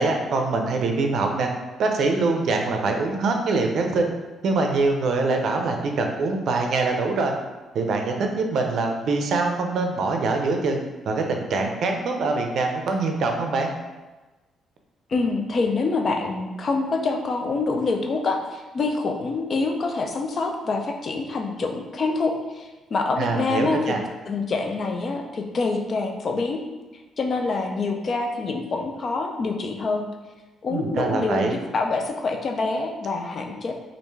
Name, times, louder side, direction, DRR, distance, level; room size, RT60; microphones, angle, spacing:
voice 1, 0.0-1.5 1.8-4.1 4.4-7.3 7.7-10.8 11.1-13.7 23.2-24.0 30.7-31.6, right 3 dB, 65° right, 3 dB, 0.5 m, -24 dB
voice 2, 15.1-23.9 24.3-26.6 27.2-30.1 30.6-33.7, left 3 dB, 45° left, 3 dB, 0.4 m, -26 dB
3.3 x 2.5 x 3.1 m, 1.2 s
cardioid pair, 90°, 0 cm